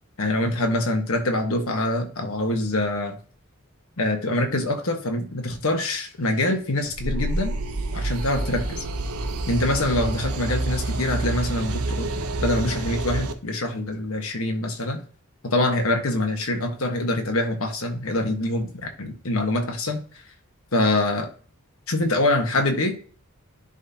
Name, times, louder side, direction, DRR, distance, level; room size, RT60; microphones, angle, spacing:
voice 1, 0.2-3.2 4.0-7.5 7.9-8.8 9.5-12.1 12.4-15.0 15.4-20.0 20.7-21.3 21.9-23.0, left 1 dB, 70° left, 4 dB, 1.3 m, -24 dB
sound 1, 7.0-13.3, right 2 dB, 90° right, 0.8 m, -28 dB
10.5 x 3.8 x 2.8 m, 0.41 s
head